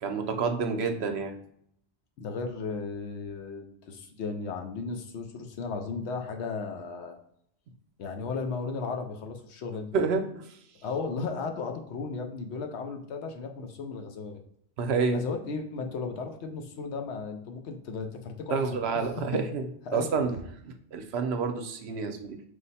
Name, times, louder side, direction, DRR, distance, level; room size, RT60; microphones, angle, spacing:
voice 1, 0.0-1.3 9.9-10.5 14.8-15.2 18.5-19.6 19.9-20.4 20.6-22.4, right 5 dB, 70° right, 7 dB, 0.8 m, -28 dB
voice 2, 2.2-7.2 8.0-9.9 10.8-14.4 15.1-19.4 19.9-20.1, left 4 dB, 80° left, 5 dB, 0.9 m, -35 dB
4.9 x 2.1 x 4.1 m, 0.69 s
omnidirectional pair, 1.1 m